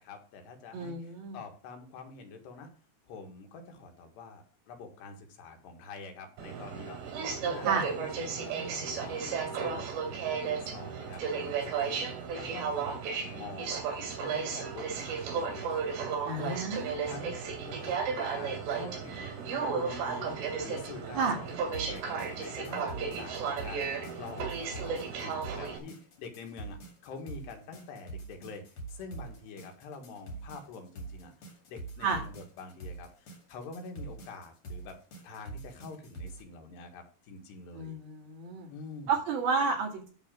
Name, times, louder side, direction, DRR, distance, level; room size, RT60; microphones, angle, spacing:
voice 1, 0.0-2.7 3.1-7.0 7.4-11.2 11.6-12.0 12.4-15.8 16.3-17.4 17.7-23.8 24.2-28.6 28.9-31.3 31.7-35.0 35.2-38.0 38.7-39.2, left 4 dB, 75° left, 4 dB, 3.6 m, -46 dB
voice 2, 0.7-1.4 7.6-7.9 16.2-17.1 21.1-21.4 32.0-32.2 37.7-38.7 39.1-40.1, right 4 dB, 60° right, 0 dB, 4.0 m, -31 dB
Aircraft, 6.4-25.8, right 6 dB, 80° right, 4.7 m, -34 dB
sound 1, 21.7-36.4, right 3 dB, 40° left, 2.4 m, -45 dB
11.5 x 4.1 x 7.5 m, 0.39 s
omnidirectional pair, 5.0 m